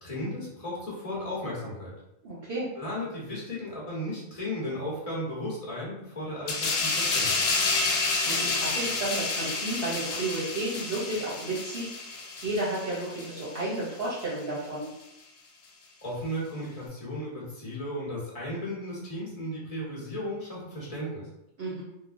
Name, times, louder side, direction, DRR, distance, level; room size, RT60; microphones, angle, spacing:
voice 1, 0.0-1.9 2.8-7.3 16.0-21.2, left 1 dB, 35° left, -6 dB, 1.2 m, -35 dB
voice 2, 2.2-2.7 8.3-14.9 21.6-21.8, right 2 dB, 60° right, -7 dB, 1.0 m, -32 dB
sound 1, 6.5-13.7 14.0-14.2, left 3 dB, 70° left, 0.8 m, -29 dB
3.6 x 2.5 x 2.5 m, 0.84 s
omnidirectional pair, 1.2 m